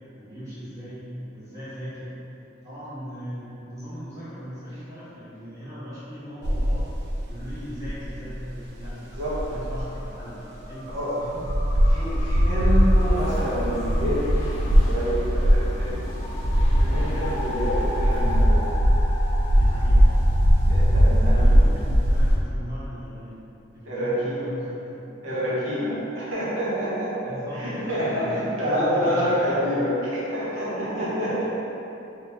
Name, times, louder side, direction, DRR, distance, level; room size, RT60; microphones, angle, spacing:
voice 1, 0.1-2.1 2.6-6.9 7.3-8.9 9.5-10.4 10.7-11.5 12.1-12.8 16.9-17.2 19.5-20.2 21.3-23.5 23.7-25.5 27.2-29.6 30.5-31.4, equal, 15° right, -13 dB, 1.1 m, -39 dB
sound 1, 6.4-10.1 10.6-10.7 10.9-11.0 11.3-22.4, equal, 55° right, 0.4 m, -20 dB
sound 2, 8.9-22.1, left 1 dB, 30° left, 0.3 m, -39 dB
voice 2, 11.9-14.5 14.8-15.9 16.7-18.7 20.7-21.7 23.8-24.4 25.2-31.4, equal, 85° right, -10 dB, 1.0 m, -27 dB
sound 3, 12.9-18.4, equal, 80° left, 0.6 m, -32 dB
2.9 x 2.8 x 3.5 m, 2.9 s
head